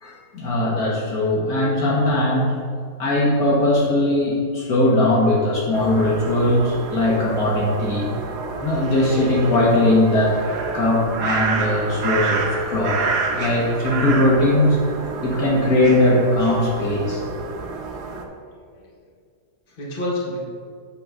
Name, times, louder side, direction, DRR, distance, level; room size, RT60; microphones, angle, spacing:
voice 1, 0.0-2.5 3.0-8.1 8.6-13.1 13.3-14.8 15.2-17.2, left 1 dB, 70° left, -5 dB, 2.0 m, -19 dB
sound 1, 5.7-18.2, right 4 dB, 90° right, 1.4 m, -29 dB
voice 2, 17.9-19.1 19.8-20.4, left 1 dB, 35° left, -5 dB, 1.5 m, -31 dB
7.8 x 3.9 x 6.1 m, 2.2 s
omnidirectional pair, 1.7 m